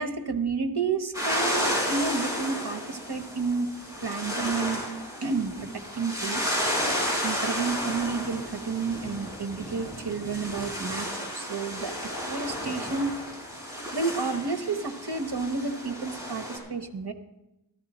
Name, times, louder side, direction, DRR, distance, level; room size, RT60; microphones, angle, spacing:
voice 1, 0.0-3.7 4.0-4.8 5.2-6.5 6.8-13.1 13.9-17.1, right 4 dB, 75° right, 8 dB, 1.1 m, -31 dB
sound 1, 1.1-16.6, equal, 10° right, 5.3 m, -32 dB
14.0 x 12.5 x 4.2 m, 0.93 s
wide cardioid pair, 60°, 40 cm